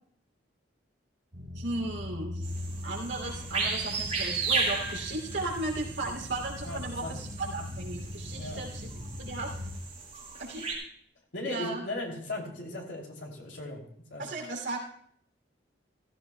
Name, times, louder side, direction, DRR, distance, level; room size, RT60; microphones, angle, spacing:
sound 1, 1.3-9.7, left 1 dB, 55° right, 3.3 m, -40 dB
voice 1, 1.5-2.5 2.8-8.9 9.2-9.5 10.4-10.7 11.4-11.9 14.2-14.8, right 2 dB, 80° right, 0 dB, 2.8 m, -35 dB
sound 2, 2.4-10.7, right 4 dB, 40° right, 4.2 m, -35 dB
voice 2, 6.6-7.2 8.3-8.6 11.3-13.8 14.1-14.3, left 1 dB, 80° left, -1 dB, 2.8 m, -37 dB
15.5 x 14.5 x 2.2 m, 0.63 s
head